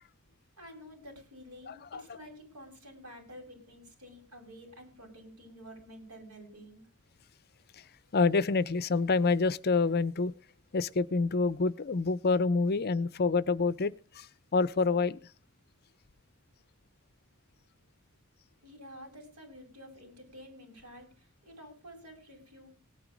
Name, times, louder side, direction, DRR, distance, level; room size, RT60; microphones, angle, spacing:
voice 1, 0.6-6.8 18.6-22.7, equal, 85° right, 7.3 m, -50 dB
voice 2, 1.7-2.0 8.1-10.3 10.7-14.3 14.5-15.2, left 4 dB, 45° left, 0.6 m, -27 dB
18.0 x 9.4 x 5.1 m
head